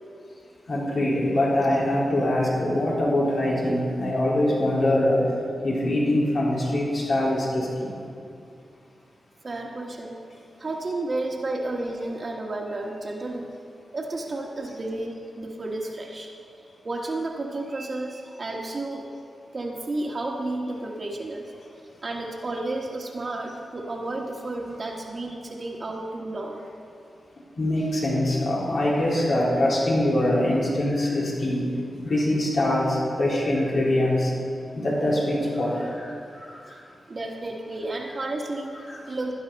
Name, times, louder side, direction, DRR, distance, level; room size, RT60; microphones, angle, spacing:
voice 1, 0.7-5.3 5.6-7.9 14.6-14.7 23.4-23.5 27.6-31.8 32.0-34.3 34.7-36.9 38.0-38.2 38.8-39.1, left 1 dB, 65° left, -5 dB, 3.6 m, -24 dB
voice 2, 9.4-10.1 10.6-13.5 13.9-16.3 16.8-19.0 19.5-21.4 22.0-26.6 36.7-36.8 37.1-38.8 39.1-39.3, right 2 dB, 50° right, 0 dB, 1.4 m, -32 dB
12.0 x 9.6 x 5.3 m, 2.3 s
cardioid pair, 55°, 0 cm